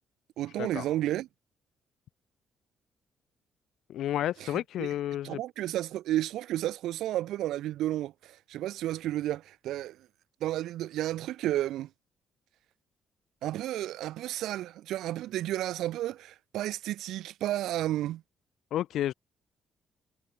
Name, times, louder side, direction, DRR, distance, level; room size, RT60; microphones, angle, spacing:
voice 1, 0.4-1.3 4.4-4.9 5.2-10.0 10.4-11.9 13.4-18.2, right 14 dB, 85° right, 0.8 m, -32 dB
voice 2, 3.9-5.4 18.7-19.1, left 12 dB, 80° left, 1.2 m, -31 dB
cardioid pair, 90°, 0 cm